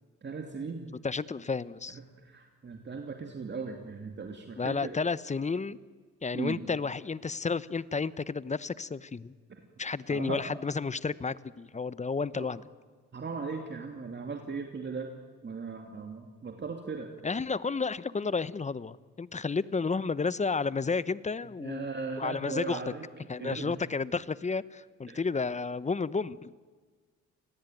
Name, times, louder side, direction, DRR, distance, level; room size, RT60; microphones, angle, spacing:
voice 1, 0.2-0.9 2.2-5.0 6.3-6.6 10.1-10.4 12.3-12.5 13.1-15.1 15.4-17.1 21.6-23.1 23.4-23.7 25.1-25.2, right 4 dB, 35° right, 3 dB, 2.7 m, -38 dB
voice 2, 1.0-2.0 4.5-5.8 6.2-9.3 9.8-12.6 17.2-21.9 22.2-22.8 23.3-26.5, left 4 dB, 25° left, 17 dB, 0.9 m, -31 dB
29.5 x 20.0 x 9.2 m, 1.5 s
cardioid pair, 90°, 30 cm